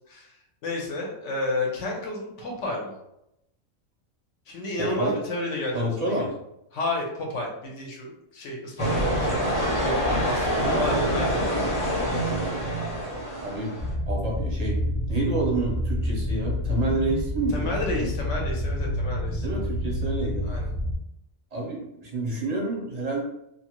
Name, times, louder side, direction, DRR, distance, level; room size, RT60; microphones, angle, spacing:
voice 1, 0.1-3.0 4.5-6.3 6.7-11.5 17.5-19.5 20.4-20.7, left 2 dB, 65° left, 0 dB, 1.0 m, -31 dB
voice 2, 4.8-5.2 5.7-6.3 10.6-11.0 11.3-11.5 13.4-13.7 14.1-14.8 15.1-18.0 19.4-20.4 21.5-23.2, right 2 dB, 40° right, -3 dB, 0.6 m, -28 dB
sound 1, 8.8-13.9, equal, 25° left, 0.9 m, -26 dB
sound 2, 13.8-20.9, left 1 dB, 50° left, 0.6 m, -28 dB
2.6 x 2.4 x 2.9 m, 0.83 s
omnidirectional pair, 1.4 m